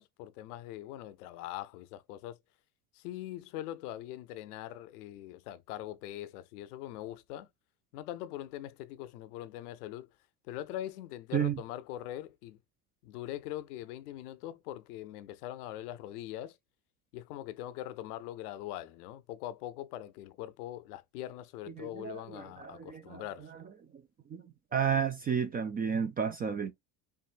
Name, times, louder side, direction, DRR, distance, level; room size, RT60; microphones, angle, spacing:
voice 1, 0.0-2.4 2.9-7.5 7.9-10.1 10.5-12.6 13.0-16.6 17.1-23.5, left 13 dB, 85° left, 0.7 m, -42 dB
voice 2, 21.8-23.2 24.3-24.4 24.7-26.7, right 7 dB, 20° right, 0.3 m, -32 dB
4.6 x 2.7 x 2.4 m
supercardioid pair, 100°, 44 cm